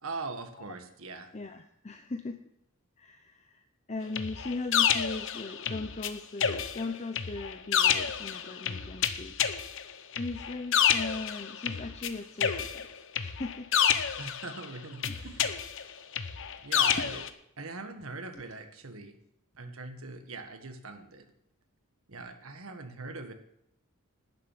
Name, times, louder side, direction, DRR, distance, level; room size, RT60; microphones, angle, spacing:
voice 1, 0.0-1.3 14.2-15.4 16.6-17.2 17.6-19.1 19.5-21.2 22.1-23.3, right 3 dB, 70° right, 6 dB, 1.5 m, -41 dB
voice 2, 1.3-2.4 3.0-9.4 10.2-12.9 13.2-13.7 15.1-15.2 17.0-17.1 18.3-18.4, left 3 dB, 30° left, 7 dB, 0.7 m, -38 dB
sound 1, 4.2-6.1 6.4-12.1 12.4-14.7 15.0-17.3, left 8 dB, 60° left, 0.9 m, -29 dB
11.5 x 7.3 x 9.0 m, 0.78 s
head